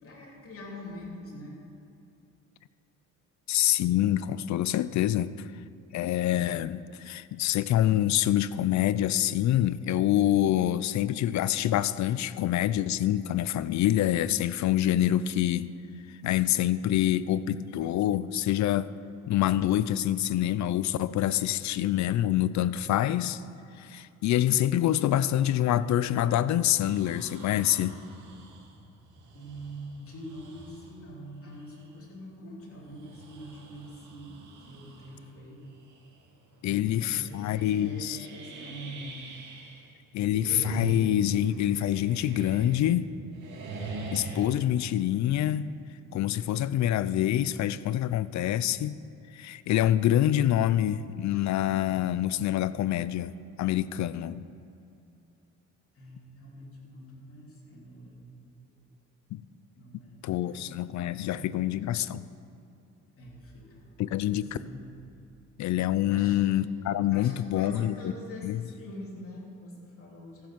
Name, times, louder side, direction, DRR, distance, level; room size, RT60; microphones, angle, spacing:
voice 1, 0.0-1.6 29.3-35.7 36.6-39.3 55.9-58.4 59.8-60.9 61.3-61.6 63.2-63.9 64.3-64.8 66.1-66.4 67.1-70.5, equal, 45° left, -4 dB, 3.3 m, -44 dB
voice 2, 3.5-5.5 5.9-15.7 16.2-18.9 19.3-23.4 23.8-28.0 36.6-38.2 40.1-43.1 44.1-45.7 46.1-49.0 49.3-53.3 53.6-54.4 59.3-59.4 60.2-62.3 64.0-64.6 65.6-67.9 68.4-68.6, left 12 dB, 65° left, 16 dB, 0.5 m, -26 dB
sound 1, 26.8-31.0 31.6-31.7 32.7-35.3 35.7-36.1 36.4-36.5 37.0-39.9 40.2-43.0 43.3-44.6, right 2 dB, 80° right, 2.2 m, -41 dB
14.5 x 7.2 x 5.9 m, 2.6 s
cardioid pair, 90°, 30 cm